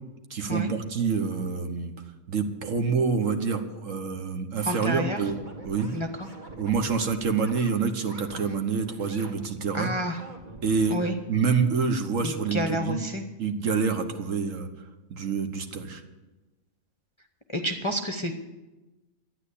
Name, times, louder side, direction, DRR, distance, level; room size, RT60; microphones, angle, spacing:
voice 1, 0.3-2.0 2.3-5.4 5.6-5.9 6.5-9.9 10.6-11.0 11.3-13.0 13.4-14.7 15.1-16.0, right 5 dB, 65° right, 7 dB, 1.6 m, -27 dB
voice 2, 4.7-5.2 5.9-6.3 9.7-10.2 10.9-11.1 12.2-13.2 17.5-18.3, equal, 25° left, 4 dB, 0.8 m, -29 dB
sound 1, 4.7-7.7 8.0-8.5 8.8-9.4 9.8-11.1, right 2 dB, 35° right, 1.8 m, -45 dB
12.0 x 9.7 x 8.5 m, 1.1 s
omnidirectional pair, 1.5 m